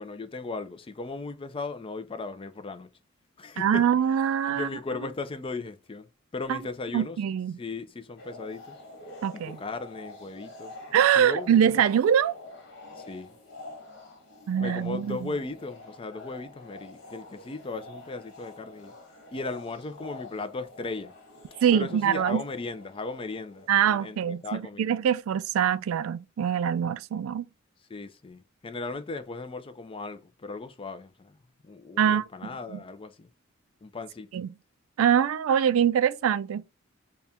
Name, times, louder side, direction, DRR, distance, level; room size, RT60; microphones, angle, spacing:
voice 1, 0.0-2.9 3.4-3.9 4.5-7.2 7.6-8.8 9.3-10.7 11.2-11.8 13.0-13.4 14.6-18.9 19.3-21.1 21.7-24.9 27.9-31.4 31.6-33.3 33.8-34.3, left 3 dB, 25° left, 0.4 m, -37 dB
voice 2, 3.6-4.7 6.5-6.6 6.9-7.6 9.2-9.6 10.9-12.4 14.5-15.3 21.6-22.4 23.7-27.4 32.0-32.2 34.3-34.5 35.0-36.6, right 8 dB, 75° right, 0.3 m, -24 dB
sound 1, 8.2-24.4, left 2 dB, 60° left, 1.4 m, -47 dB
4.1 x 2.3 x 3.5 m
head